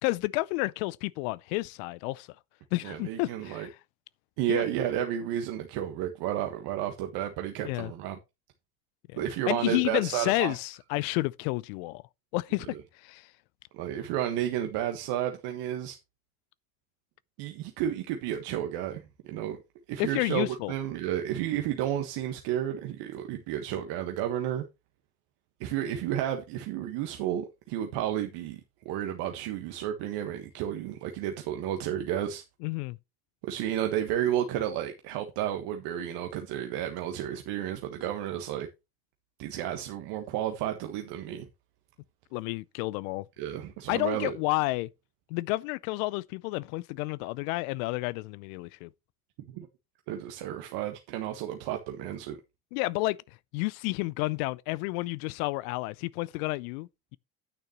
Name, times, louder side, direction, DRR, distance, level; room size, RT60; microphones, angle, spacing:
voice 1, 0.0-2.3 2.7-3.8 4.5-4.6 7.6-7.9 9.1-9.2 9.5-12.0 12.3-13.3 20.0-20.7 32.6-33.0 42.3-43.2 43.9-44.9 45.3-48.9 52.7-53.2 53.5-57.2, left 22 dB, 75° left, 0.6 m, -30 dB
voice 2, 2.8-3.7 4.4-8.2 9.1-10.5 12.7-12.8 13.7-16.0 17.4-19.0 19.3-19.6 19.9-24.6 25.6-28.6 28.8-32.4 33.4-38.7 39.4-41.5 43.4-44.3 49.5-49.7 50.1-52.4, right 11 dB, 70° right, 1.4 m, -32 dB
10.0 x 9.0 x 3.0 m
hypercardioid pair, 60°, 43 cm